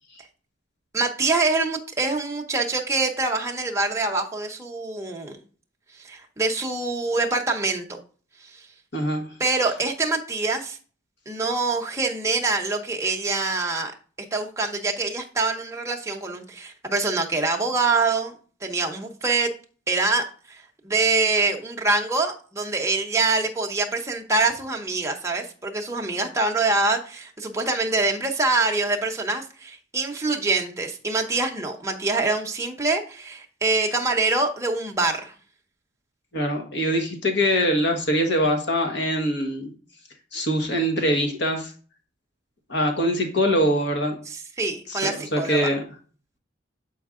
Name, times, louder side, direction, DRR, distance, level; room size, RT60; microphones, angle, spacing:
voice 1, 0.9-5.4 6.0-8.0 8.5-8.6 9.4-10.8 11.3-13.9 14.3-18.3 18.6-19.5 19.9-35.3 44.3-45.7, right 3 dB, 15° right, 1 dB, 0.9 m, -25 dB
voice 2, 8.9-9.2 36.3-39.7 40.3-41.7 42.7-44.2 44.9-45.8, equal, 60° left, 3 dB, 1.4 m, -23 dB
7.8 x 4.6 x 3.7 m, 0.40 s
head